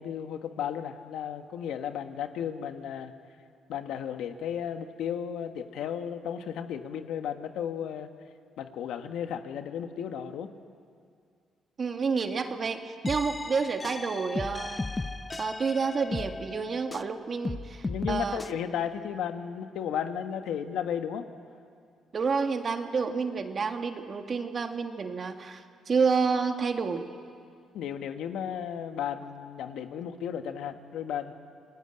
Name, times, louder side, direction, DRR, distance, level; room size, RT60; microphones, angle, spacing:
voice 1, 0.0-3.1 3.7-8.1 8.6-10.5 17.8-21.3 27.7-31.3, left 8 dB, 80° left, 7 dB, 1.5 m, -34 dB
voice 2, 11.8-14.8 15.4-18.4 22.1-27.1, right 5 dB, 45° right, 6 dB, 2.0 m, -29 dB
sound 1, 13.0-17.1 17.4-18.5, left 3 dB, 20° left, 0.9 m, -35 dB
28.5 x 20.0 x 9.0 m, 2.2 s
cardioid pair, 90°, 0 cm